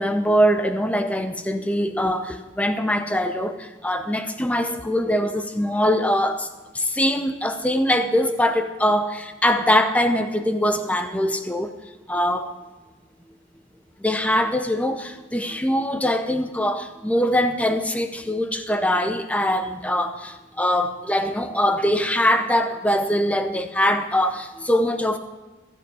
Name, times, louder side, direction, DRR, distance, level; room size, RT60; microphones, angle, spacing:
voice 1, 0.0-6.5 6.7-11.7 12.1-12.5 14.0-25.2, equal, 5° left, 8 dB, 0.6 m, -22 dB
15.0 x 8.0 x 5.5 m, 1.2 s
head